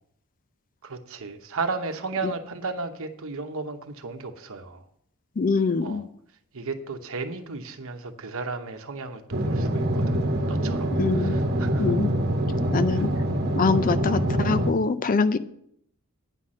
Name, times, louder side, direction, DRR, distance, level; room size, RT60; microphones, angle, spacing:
voice 1, 0.8-4.8 5.8-6.0 6.5-10.2 10.5-11.9 12.9-13.0, right 3 dB, 65° right, 6 dB, 1.0 m, -34 dB
voice 2, 5.4-6.1 11.0-11.4 11.8-12.1 12.7-13.1 13.6-15.4, left 4 dB, 40° left, 13 dB, 0.4 m, -24 dB
sound 1, 9.3-14.7, right 1 dB, 45° right, 1.2 m, -25 dB
9.1 x 5.8 x 6.3 m, 0.70 s
head